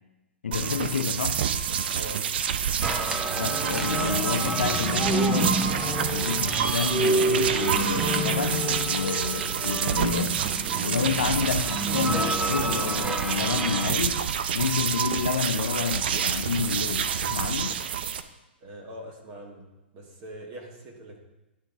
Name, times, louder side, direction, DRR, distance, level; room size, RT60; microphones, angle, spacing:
voice 1, 0.4-1.4 3.4-10.4 10.8-14.3 14.5-17.8, left 6 dB, 80° left, 0.5 m, -29 dB
sound 1, 0.5-18.2, right 8 dB, 60° right, 0.5 m, -28 dB
sound 2, 2.8-13.9, right 2 dB, 10° right, 0.6 m, -29 dB
voice 2, 18.6-19.7 19.9-21.2, right 1 dB, 35° right, 1.8 m, -42 dB
11.0 x 3.8 x 3.6 m
hypercardioid pair, 120°, 6 cm